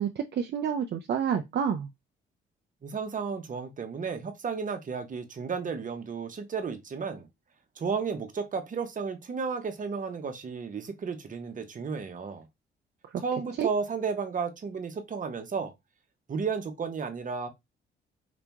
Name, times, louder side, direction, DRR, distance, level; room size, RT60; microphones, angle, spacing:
voice 1, 0.0-1.9 13.0-13.2 13.6-13.7, right 8 dB, 60° right, 0.6 m, -29 dB
voice 2, 2.8-7.3 7.8-12.4 13.2-15.7 16.3-17.5, right 5 dB, 40° right, 1.2 m, -33 dB
5.1 x 2.8 x 3.6 m
cardioid pair, 90°, 20 cm